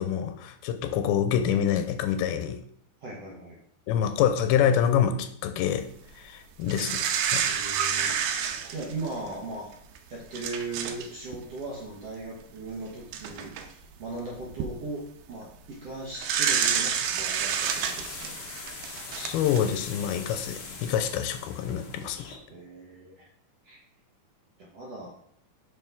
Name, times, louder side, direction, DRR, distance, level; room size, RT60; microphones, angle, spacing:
voice 1, 0.0-2.6 3.9-5.9 6.2-7.5 19.1-22.3, left 9 dB, 90° left, 8 dB, 2.5 m, -26 dB
voice 2, 3.0-3.6 7.4-8.4 8.7-9.7 10.1-18.4 22.5-23.3 23.6-23.8 24.6-25.1, right 2 dB, 65° right, -4 dB, 1.6 m, -38 dB
sound 1, 6.7-9.3 10.0-10.1 10.3-11.1 11.3-11.5 12.6-12.7 13.1-13.7 14.3-14.7 16.1-19.8 20.3-20.4, right 8 dB, 85° right, 2.5 m, -29 dB
sound 2, 16.4-22.4, left 4 dB, 65° left, 1.4 m, -42 dB
6.9 x 5.8 x 3.6 m, 0.63 s
omnidirectional pair, 4.4 m